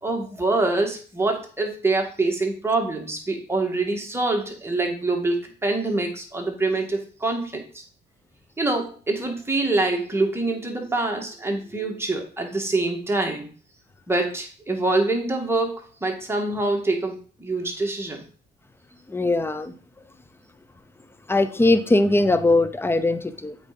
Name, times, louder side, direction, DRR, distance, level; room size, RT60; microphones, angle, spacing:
voice 1, 0.0-7.8 8.6-13.5 14.1-18.2, right 2 dB, 10° right, 1 dB, 2.4 m, -25 dB
voice 2, 19.1-19.7 21.3-23.6, left 2 dB, 10° left, 12 dB, 0.7 m, -20 dB
8.1 x 4.9 x 5.4 m, 0.41 s
cardioid pair, 90°, 20 cm